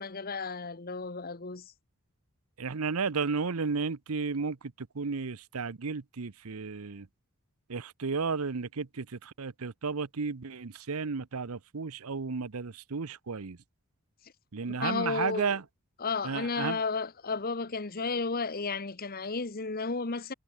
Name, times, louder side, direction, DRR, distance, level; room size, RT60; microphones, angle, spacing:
voice 1, 0.0-1.7 14.6-15.6 16.0-20.3, left 4 dB, 40° left, 1.1 m, -33 dB
voice 2, 2.6-7.1 7.7-13.6 14.5-15.6 16.2-16.8, right 5 dB, 75° right, 0.8 m, -33 dB
head